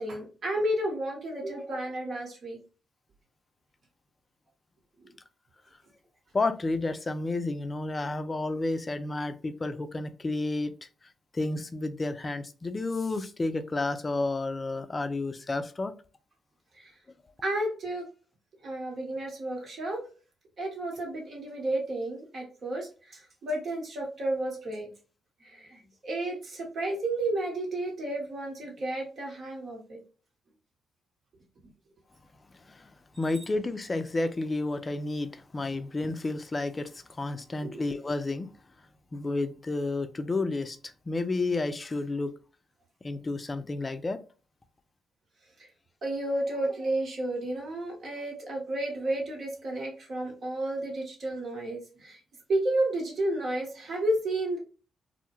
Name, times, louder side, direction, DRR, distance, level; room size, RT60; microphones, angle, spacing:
voice 1, 0.0-2.6 16.8-16.9 17.4-18.0 18.6-20.0 20.6-24.9 25.4-30.0 37.6-37.8 46.0-52.2 52.5-54.6, right 1 dB, 55° right, 1.0 m, -32 dB
voice 2, 6.3-15.9 32.5-32.9 33.2-38.5 38.8-42.3 43.0-44.2, left 2 dB, 35° left, 0.3 m, -31 dB
2.1 x 2.0 x 2.9 m
hypercardioid pair, 40°, 0 cm